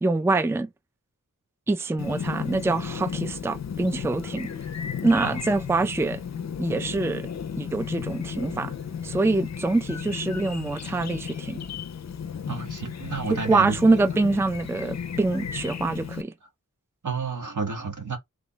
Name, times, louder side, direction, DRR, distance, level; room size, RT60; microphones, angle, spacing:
voice 1, 0.0-0.7 1.7-4.5 5.0-6.2 6.6-7.2 7.6-8.7 9.0-11.6 13.3-16.3, right 3 dB, 10° right, 0.4 m, -25 dB
Chirp tweet, 2.0-16.2, left 7 dB, 55° left, 0.5 m, -34 dB
voice 2, 12.5-13.8 17.0-18.2, right 5 dB, 75° right, 1.4 m, -31 dB
3.5 x 2.2 x 3.9 m
wide cardioid pair, 60°, 32 cm